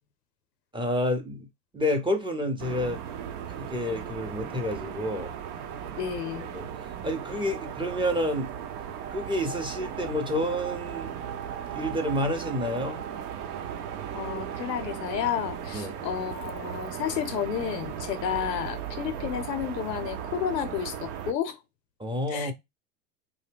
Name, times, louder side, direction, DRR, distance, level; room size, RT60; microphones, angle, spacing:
voice 1, 0.7-1.5 1.7-3.0 3.6-5.3 6.5-8.5 9.1-11.2 11.6-13.0 15.7-16.0 22.0-22.5, left 1 dB, 10° right, 0.6 m, -29 dB
sound 1, 2.6-21.3, right 8 dB, 65° right, 0.7 m, -37 dB
voice 2, 6.0-6.5 14.1-21.6 22.3-22.5, left 9 dB, 85° left, 0.7 m, -31 dB
2.6 x 2.1 x 3.4 m
hypercardioid pair, 90°, 48 cm